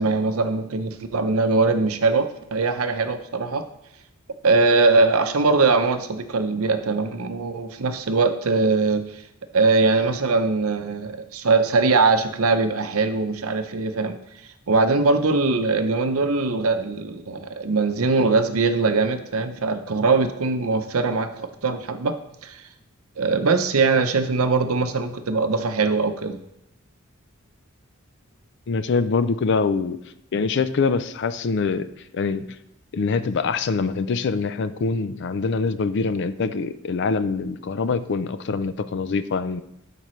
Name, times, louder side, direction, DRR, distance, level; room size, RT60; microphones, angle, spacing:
voice 1, 0.0-3.6 4.4-9.2 9.5-14.2 14.7-22.6 23.2-26.4, right 3 dB, 80° right, 9 dB, 0.7 m, -21 dB
voice 2, 28.7-30.0 30.3-32.6 32.9-39.6, left 4 dB, 55° left, 13 dB, 0.4 m, -24 dB
11.5 x 5.2 x 3.2 m, 0.83 s
head